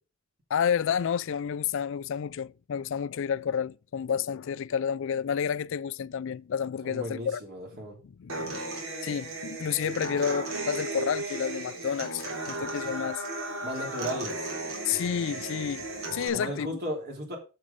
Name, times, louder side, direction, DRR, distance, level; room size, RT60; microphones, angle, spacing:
voice 1, 0.5-7.4 8.2-8.6 9.0-13.2 14.8-16.8, left 7 dB, 65° left, 0.4 m, -30 dB
voice 2, 6.8-8.0 13.6-14.5 16.3-17.4, equal, 50° right, 3.1 m, -35 dB
Human voice / Acoustic guitar, 8.3-16.3, right 2 dB, 80° right, 3.7 m, -35 dB
7.6 x 7.4 x 5.2 m
head